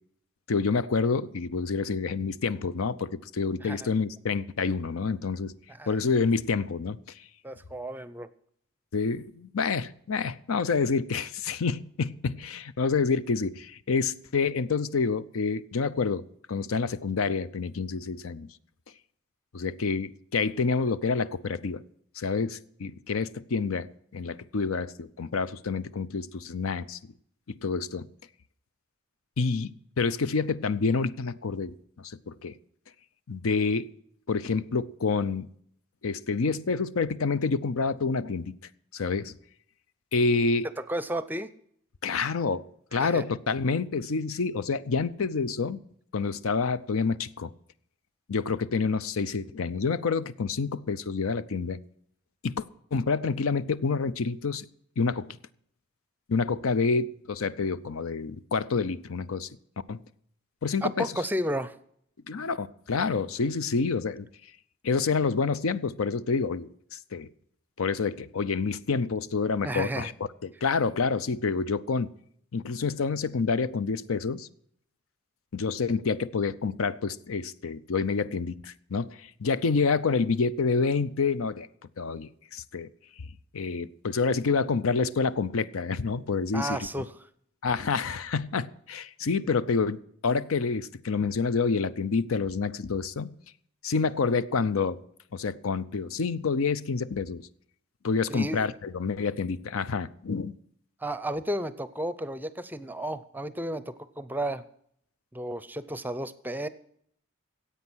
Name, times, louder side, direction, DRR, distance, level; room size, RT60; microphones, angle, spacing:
voice 1, 0.5-5.5 5.9-7.0 8.9-18.5 19.5-21.8 22.2-27.0 27.6-28.1 29.4-32.6 33.3-33.9 34.3-35.5 36.0-38.5 38.9-39.3 40.1-40.7 42.0-42.7 42.9-45.8 46.1-47.5 48.3-51.8 52.4-52.6 52.9-54.7 55.0-55.4 56.3-59.5 59.9-60.0 60.6-61.1 62.3-64.3 64.8-67.3 67.8-70.1 70.4-72.1 72.5-74.5 75.5-81.7 82.0-82.9 83.5-86.8 87.6-93.3 93.8-95.0 95.3-97.5 98.0-100.6, left 4 dB, 85° left, 0.6 m, -28 dB
voice 2, 7.4-8.3 40.8-41.5 42.9-43.2 60.8-61.7 69.6-70.1 86.5-87.1 89.4-89.5 98.3-98.7 101.0-104.6 105.3-106.7, right 1 dB, 10° right, 0.5 m, -33 dB
15.5 x 8.4 x 6.2 m
head